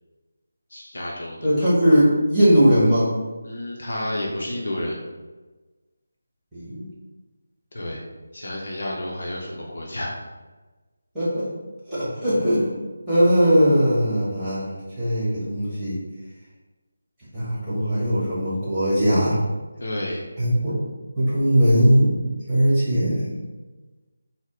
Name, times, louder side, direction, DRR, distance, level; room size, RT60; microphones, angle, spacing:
voice 1, 0.7-1.4 3.4-5.0 7.7-8.0 8.3-10.1 19.8-20.2, left 1 dB, 50° left, -3 dB, 0.6 m, -30 dB
voice 2, 1.4-3.1 6.5-6.8 11.1-11.5 11.9-12.7 13.1-16.0 17.3-19.4 20.4-20.7 21.2-22.1 22.5-23.3, equal, 5° right, -15 dB, 1.4 m, -19 dB
4.0 x 2.0 x 3.7 m, 1.2 s
figure-of-eight pair, 155°, 0 cm